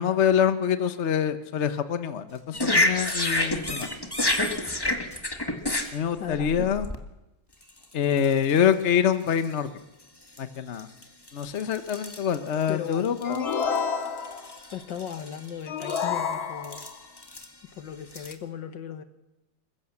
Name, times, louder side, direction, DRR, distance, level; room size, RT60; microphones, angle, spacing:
voice 1, 0.0-3.9 5.9-6.9 7.9-9.7 10.4-10.9 11.3-13.5, left 8 dB, 45° left, 11 dB, 1.0 m, -25 dB
sound 1, 2.3-2.8 3.1-3.5 3.8-5.2 5.6-6.5 7.6-7.7, right 1 dB, 10° right, 3.7 m, -50 dB
sound 2, 2.5-7.0 7.7-7.8 8.2-8.6 9.3-9.5 10.4-10.5 10.8-13.8 14.1-15.5 15.8-16.1 16.6-17.5 18.1-18.3, left 1 dB, 15° left, 1.5 m, -29 dB
voice 2, 6.2-6.7 12.7-13.1 14.7-16.9 17.8-19.0, left 8 dB, 65° left, 9 dB, 2.0 m, -37 dB
sound 3, 13.2-14.6 15.7-17.0, left 6 dB, 85° left, 2.4 m, -29 dB
27.0 x 15.5 x 7.2 m, 0.99 s
omnidirectional pair, 2.2 m